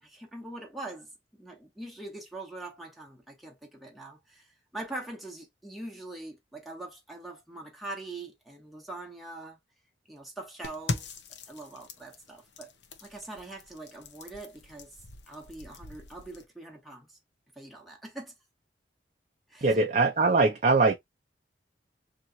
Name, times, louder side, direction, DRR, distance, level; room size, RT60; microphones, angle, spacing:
voice 1, 0.0-1.1 1.4-9.6 10.1-11.1 11.5-12.7 13.0-15.0 15.3-17.2 17.6-18.3 19.5-19.7, right 2 dB, ahead, 1.1 m, -43 dB
sound 1, 10.6-16.4, left 3 dB, 80° left, 0.8 m, -41 dB
voice 2, 19.6-20.9, right 3 dB, 40° right, 0.5 m, -22 dB
2.9 x 2.9 x 3.9 m
head